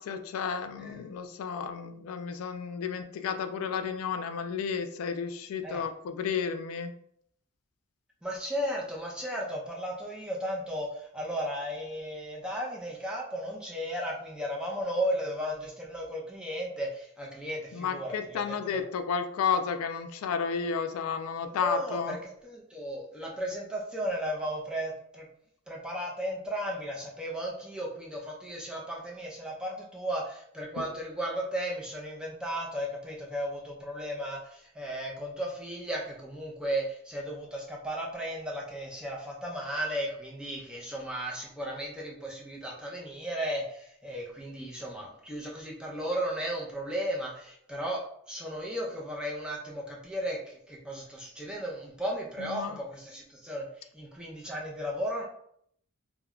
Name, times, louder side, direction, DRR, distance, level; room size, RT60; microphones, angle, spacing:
voice 1, 0.0-6.9 17.7-22.2 30.8-30.9 52.4-52.8, left 6 dB, 80° left, 9 dB, 0.3 m, -32 dB
voice 2, 8.2-18.8 21.6-25.2 25.7-53.7 53.9-55.2, equal, 5° right, -2 dB, 0.5 m, -35 dB
2.2 x 2.1 x 3.6 m, 0.69 s
head